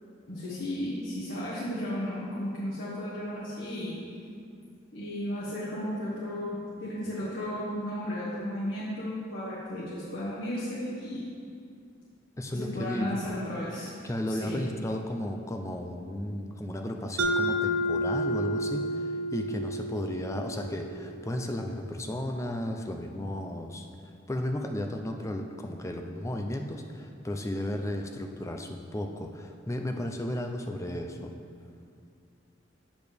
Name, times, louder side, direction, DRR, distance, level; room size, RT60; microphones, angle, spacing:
voice 1, 0.3-4.0 4.9-11.3 12.5-13.9 14.3-14.6, left 1 dB, 70° left, -10 dB, 1.4 m, -34 dB
voice 2, 12.4-13.4 14.0-23.9 24.3-31.3, left 1 dB, 15° left, 4 dB, 0.4 m, -34 dB
Mallet percussion, 17.2-21.7, equal, 85° right, 0.6 m, -31 dB
8.1 x 6.8 x 3.4 m, 2.3 s
head